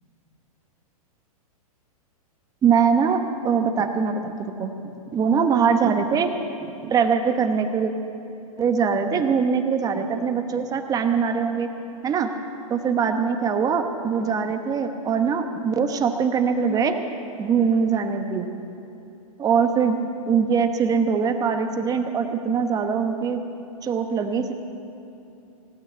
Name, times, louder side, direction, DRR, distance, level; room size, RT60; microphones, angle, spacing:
voice 1, 2.6-4.7 5.1-6.3 6.6-7.9 8.6-11.7 12.0-12.3 12.7-17.0 17.4-18.5 19.4-20.0 20.3-23.4 23.8-24.5, right 6 dB, 20° right, 7 dB, 1.1 m, -22 dB
17.5 x 9.0 x 8.7 m, 2.9 s
hypercardioid pair, 130°, 19 cm